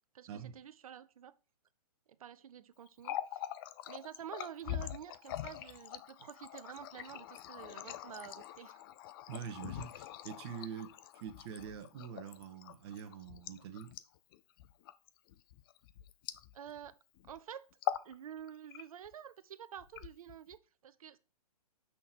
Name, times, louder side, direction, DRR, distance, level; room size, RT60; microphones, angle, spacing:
voice 1, 0.1-1.4 2.2-3.4 3.9-8.8 16.5-17.0 17.3-17.7 18.0-21.2, right 9 dB, 60° right, 0.7 m, -49 dB
Water tap faucet, 2.9-16.9 17.2-17.4 17.7-18.1 18.5-19.1 19.8-20.6, left 13 dB, 35° left, 0.5 m, -43 dB
voice 2, 9.3-13.9, right 8 dB, 40° right, 1.4 m, -45 dB
6.2 x 6.0 x 4.6 m
hypercardioid pair, 130°, 20 cm